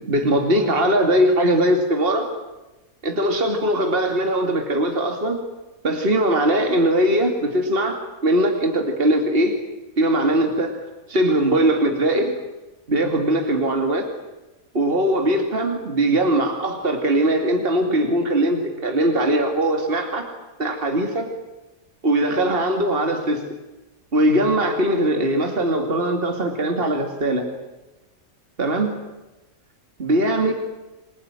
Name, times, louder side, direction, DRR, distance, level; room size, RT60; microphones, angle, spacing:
voice 1, 0.1-2.3 3.0-5.4 5.8-9.6 10.0-10.8 11.1-12.4 12.9-14.1 14.7-20.3 20.6-21.3 22.0-23.4 24.1-27.5 28.6-28.9 30.0-30.5, right 1 dB, 40° right, 4 dB, 2.8 m, -20 dB
28.0 x 20.5 x 9.1 m, 1.1 s
omnidirectional pair, 1.5 m